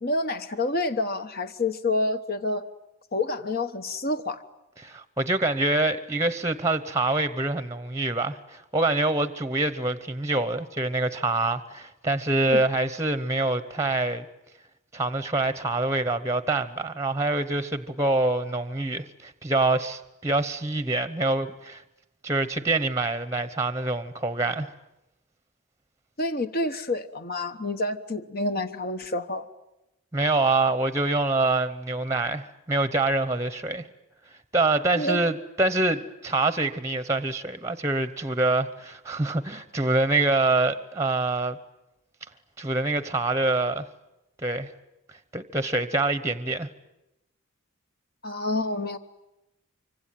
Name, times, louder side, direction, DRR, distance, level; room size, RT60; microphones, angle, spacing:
voice 1, 0.0-2.6 3.1-4.4 12.5-12.6 26.2-29.4 34.9-35.3 48.2-49.0, left 2 dB, 45° left, 1.1 m, -28 dB
voice 2, 4.8-14.3 14.9-21.8 22.2-24.7 30.1-33.8 34.5-41.6 42.6-43.9 44.4-44.7 45.1-46.7, right 2 dB, 15° right, 0.9 m, -25 dB
25.0 x 25.0 x 9.2 m
head